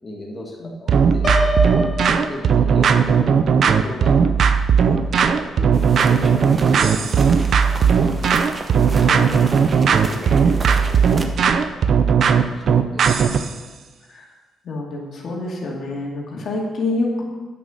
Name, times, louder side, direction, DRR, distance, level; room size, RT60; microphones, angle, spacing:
voice 1, 0.0-1.7 2.1-4.2 5.0-7.8 8.7-11.9 12.2-13.1, left 1 dB, 20° left, -3 dB, 2.2 m, -36 dB
sound 1, 0.9-13.5, right 6 dB, 60° right, 0.6 m, -17 dB
Piano, 1.2-3.2, left 1 dB, 35° left, 1.5 m, -25 dB
sound 2, 5.7-11.3, right 3 dB, 30° right, 1.0 m, -35 dB
voice 2, 9.0-9.4 12.6-12.8 14.1-14.3 14.6-17.2, left 2 dB, 60° left, -2 dB, 2.5 m, -27 dB
9.3 x 6.3 x 6.5 m, 1.3 s
cardioid pair, 90°, 0 cm